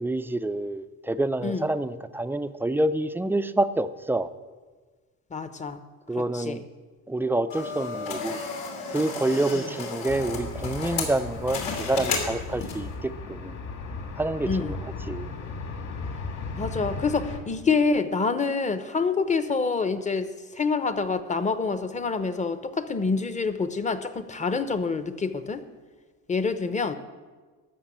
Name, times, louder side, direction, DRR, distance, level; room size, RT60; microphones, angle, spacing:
voice 1, 0.0-4.3 6.1-6.6 7.1-8.4 8.9-13.6 14.2-15.3, right 2 dB, 5° right, 12 dB, 0.4 m, -27 dB
voice 2, 5.3-5.8 6.3-6.6 14.5-14.7 16.6-25.6 26.3-26.9, left 4 dB, 20° left, 11 dB, 0.8 m, -27 dB
sound 1, 7.5-13.0, left 4 dB, 85° left, 2.8 m, -33 dB
sound 2, 10.1-17.4, left 4 dB, 50° left, 2.3 m, -36 dB
13.0 x 6.4 x 8.7 m, 1.4 s
cardioid pair, 120°, 35 cm